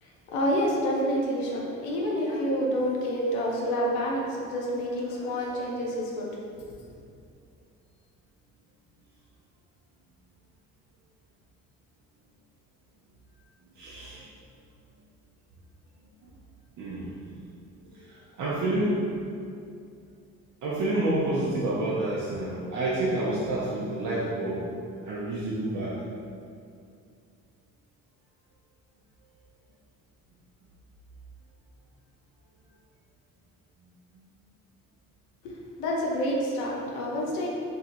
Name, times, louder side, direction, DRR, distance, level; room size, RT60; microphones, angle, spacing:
voice 1, 0.0-6.3 35.4-37.5, equal, 90° left, -3 dB, 0.5 m, -28 dB
voice 2, 13.8-14.3 16.2-16.3 16.8-17.2 17.9-19.0 20.6-24.7 25.0-26.1 34.1-34.2, right 1 dB, 60° right, -7 dB, 0.6 m, -29 dB
2.7 x 2.3 x 2.5 m, 2.3 s
hypercardioid pair, 55°, 35 cm